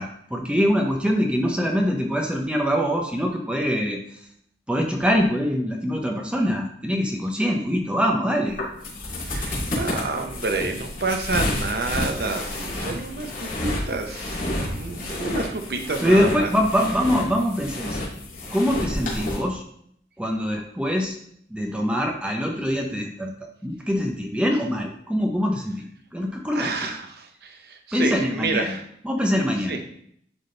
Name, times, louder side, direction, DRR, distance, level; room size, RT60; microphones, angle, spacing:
voice 1, 0.0-4.0 4.7-8.6 16.0-18.0 18.5-19.6 20.2-21.1 21.5-25.8 26.1-26.9 27.9-28.7 29.0-29.8, equal, 5° right, 1 dB, 0.7 m, -23 dB
sound 1, 8.5-19.4, left 1 dB, 50° left, 2.6 m, -30 dB
voice 2, 9.3-16.5 26.5-28.8 29.7-29.8, right 3 dB, 60° right, 5 dB, 0.7 m, -29 dB
10.5 x 3.6 x 3.9 m, 0.67 s
head